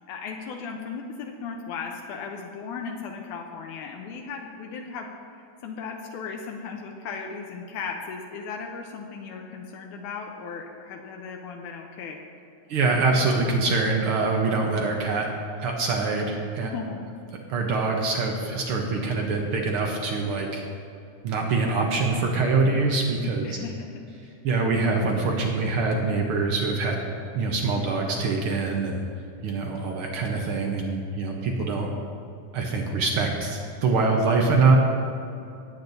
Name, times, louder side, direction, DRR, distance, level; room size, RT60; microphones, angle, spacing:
voice 1, 0.1-12.2 16.6-17.1 23.4-24.0, left 5 dB, 85° left, 2 dB, 2.2 m, -36 dB
voice 2, 12.7-15.3 15.6-16.7 17.5-20.6 21.2-23.6 24.4-27.0 27.3-29.1 29.4-31.9 32.5-34.8, right 3 dB, 70° right, 1 dB, 1.3 m, -24 dB
17.5 x 8.7 x 2.7 m, 2.6 s
omnidirectional pair, 3.5 m